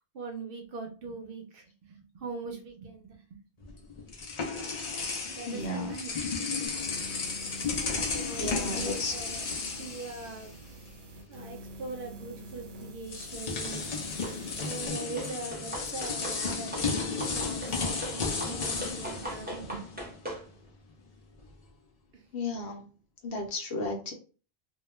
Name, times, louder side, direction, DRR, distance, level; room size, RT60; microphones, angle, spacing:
voice 1, 0.1-3.4 5.3-6.9 7.8-9.4 9.8-10.5 11.3-13.8 14.6-20.1 22.1-22.2 22.5-22.6, right 3 dB, 65° right, 3 dB, 0.7 m, -42 dB
sound 1, 3.6-10.9 11.2-11.4 12.5-12.6 13.0-20.2, left 4 dB, 50° left, 0.4 m, -34 dB
voice 2, 5.4-6.0 6.6-6.7 8.4-9.4 22.3-23.0 23.2-24.1, left 2 dB, 75° left, 2 dB, 0.9 m, -34 dB
sound 2, 6.7-14.9, equal, 90° right, 0.9 m, -47 dB
sound 3, 14.2-14.7 15.2-20.5, equal, 10° right, 0.6 m, -40 dB
2.2 x 2.2 x 3.0 m, 0.37 s
omnidirectional pair, 1.1 m